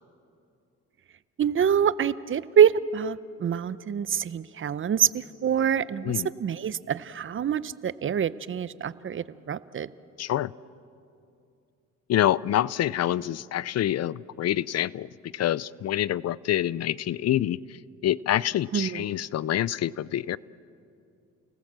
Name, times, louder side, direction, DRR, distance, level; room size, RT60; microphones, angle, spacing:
voice 1, 1.4-6.1 6.4-9.9 18.7-19.0, right 8 dB, 40° right, 17 dB, 0.7 m, -25 dB
voice 2, 10.2-10.5 12.1-17.8 18.0-20.4, left 12 dB, 55° left, 21 dB, 0.5 m, -26 dB
30.0 x 18.5 x 7.5 m, 2.5 s
cardioid pair, 90°, 30 cm